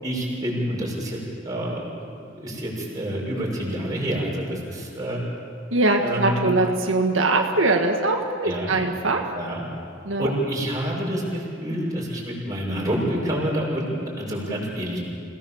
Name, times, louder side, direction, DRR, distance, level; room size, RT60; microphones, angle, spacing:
voice 1, 0.0-5.2 6.0-6.6 8.4-8.7 9.3-9.6 10.2-15.0, equal, 20° right, -4 dB, 6.5 m, -28 dB
voice 2, 5.7-9.2 10.0-10.3, right 2 dB, 90° right, 2 dB, 1.8 m, -22 dB
28.5 x 18.5 x 7.3 m, 2.5 s
head